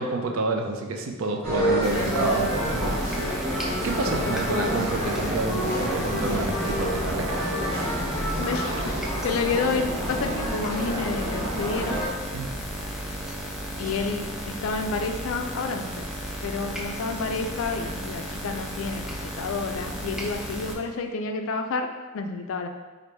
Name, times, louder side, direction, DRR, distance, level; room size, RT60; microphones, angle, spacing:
voice 1, 0.0-3.0 3.6-7.6 12.3-12.5, right 3 dB, 70° right, 3 dB, 0.4 m, -29 dB
sound 1, 1.4-12.1, equal, 85° right, 1.4 m, -28 dB
sound 2, 1.8-20.7, equal, ahead, 0.4 m, -34 dB
voice 2, 1.9-2.4 4.2-4.9 8.4-12.0 13.8-16.1 16.4-21.9 22.1-22.7, left 4 dB, 65° left, 5 dB, 0.4 m, -30 dB
3.2 x 2.5 x 4.3 m, 1.3 s
head